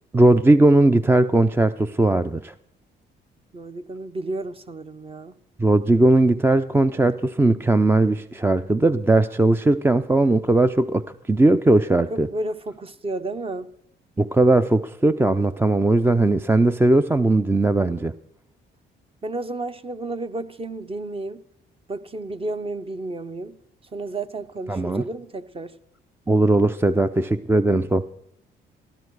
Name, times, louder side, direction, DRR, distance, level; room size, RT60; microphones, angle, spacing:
voice 1, 0.1-2.5 5.6-12.3 14.2-18.1 24.7-25.0 26.3-28.1, right 2 dB, 10° right, 0.5 m, -18 dB
voice 2, 3.5-5.3 12.1-13.7 19.2-21.4 21.9-23.6 23.9-25.7, right 2 dB, 30° right, 0.9 m, -32 dB
14.5 x 13.0 x 4.8 m
cardioid pair, 90°, 20 cm